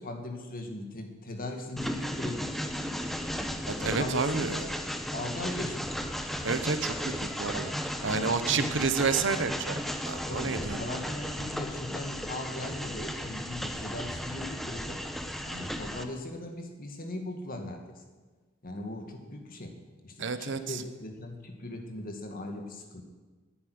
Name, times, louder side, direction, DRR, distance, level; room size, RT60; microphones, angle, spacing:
voice 1, 0.0-2.5 3.8-4.9 5.1-5.8 8.1-8.8 10.3-15.0 15.4-18.0 18.6-19.7 20.0-23.0, left 1 dB, 45° left, 4 dB, 2.1 m, -39 dB
Train, 1.8-16.0, equal, ahead, 0.9 m, -35 dB
voice 2, 3.7-4.6 6.4-7.7 8.0-9.8 10.1-10.8 20.2-20.8, right 5 dB, 65° right, 11 dB, 0.9 m, -30 dB
10.5 x 9.5 x 9.6 m, 1.3 s
head